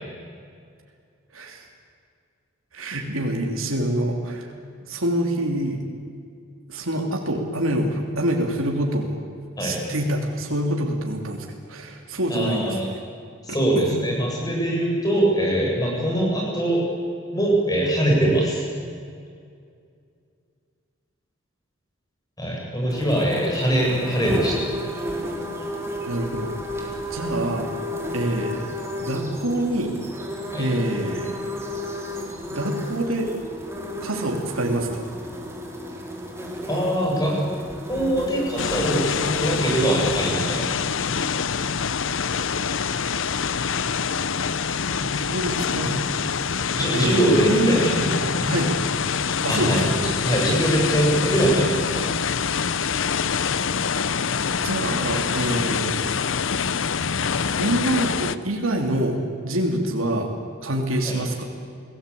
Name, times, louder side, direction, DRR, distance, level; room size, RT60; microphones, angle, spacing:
voice 1, 1.3-1.6 2.7-4.5 4.8-5.8 6.7-9.2 9.6-13.0 13.8-14.0 26.1-26.5 27.1-27.7 28.1-28.6 29.0-29.9 30.6-31.4 32.5-33.3 34.0-35.1 44.9-46.0 46.9-47.8 48.4-48.7 49.4-50.0 54.6-56.1 57.6-60.3 60.6-61.4, right 1 dB, 85° right, 1 dB, 3.2 m, -26 dB
voice 2, 12.3-12.9 13.4-16.8 17.3-18.6 22.4-24.6 30.5-30.7 36.7-37.4 37.9-40.6 46.7-48.5 49.5-52.1 61.1-61.2, right 1 dB, 20° left, -1 dB, 7.3 m, -22 dB
sound 1, 22.9-40.3, left 1 dB, 15° right, 3.8 m, -33 dB
sound 2, 38.6-58.4, left 6 dB, 65° left, 0.8 m, -25 dB
29.5 x 18.5 x 8.6 m, 2.3 s
head